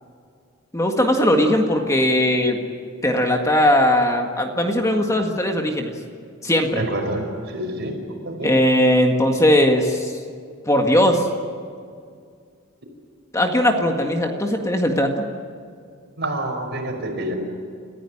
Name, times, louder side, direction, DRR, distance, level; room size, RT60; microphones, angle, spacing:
voice 1, 0.7-2.6 3.0-5.9 6.4-6.8 8.4-10.1 10.7-11.3 13.3-15.3, left 1 dB, 15° left, 3 dB, 1.8 m, -19 dB
voice 2, 6.8-8.5 16.2-17.3, right 1 dB, 55° right, 3 dB, 5.1 m, -27 dB
29.5 x 15.0 x 10.0 m, 2.2 s
head